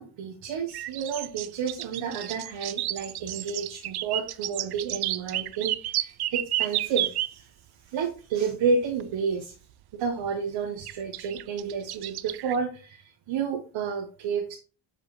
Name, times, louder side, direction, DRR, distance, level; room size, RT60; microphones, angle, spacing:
voice 1, 0.0-7.5 7.8-9.5 10.0-14.5, right 5 dB, 80° right, 1 dB, 1.2 m, -30 dB
sound 1, 0.7-7.3 9.0-9.1 10.9-12.6, right 14 dB, 60° right, 0.5 m, -31 dB
7.5 x 4.9 x 3.2 m, 0.36 s
cardioid pair, 85°, 45 cm